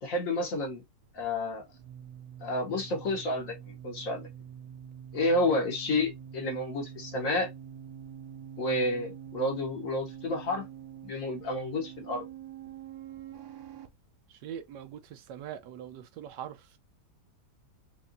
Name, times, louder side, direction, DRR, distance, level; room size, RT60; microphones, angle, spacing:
voice 1, 0.0-0.8 1.1-1.6 2.4-4.2 5.1-7.5 8.6-10.7 11.0-12.2, left 2 dB, 55° left, 1.3 m, -30 dB
sound 1, 1.0-13.9, right 9 dB, 65° right, 1.0 m, -46 dB
voice 2, 14.3-16.8, right 9 dB, 90° right, 1.3 m, -43 dB
4.6 x 2.5 x 2.6 m
omnidirectional pair, 1.8 m